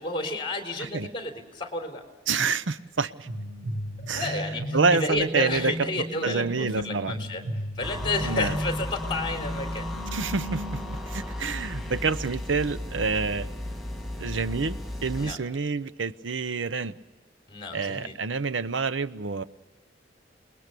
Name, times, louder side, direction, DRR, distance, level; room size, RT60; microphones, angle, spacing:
voice 1, 0.0-2.0 4.0-7.4 7.8-9.9 15.2-15.4 17.5-18.1, left 2 dB, 25° left, 5 dB, 3.7 m, -31 dB
voice 2, 2.3-3.3 4.1-4.3 4.7-7.1 8.2-8.6 10.1-10.8 11.1-13.5 14.2-16.9 17.7-19.4, right 4 dB, 75° right, 15 dB, 0.7 m, -28 dB
sound 1, 3.2-10.9, equal, 55° right, 6.5 m, -35 dB
sound 2, 7.8-15.4, left 1 dB, ahead, 2.2 m, -35 dB
28.5 x 21.0 x 6.8 m, 1.2 s
head